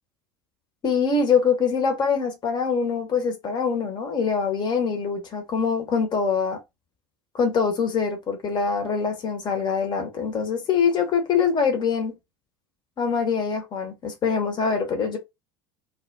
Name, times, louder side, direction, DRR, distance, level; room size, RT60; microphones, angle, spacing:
voice 1, 0.8-6.6 7.3-12.2 13.0-15.2, left 5 dB, 35° left, 1.1 m, -24 dB
2.3 x 2.2 x 3.8 m
hypercardioid pair, 70°, 12 cm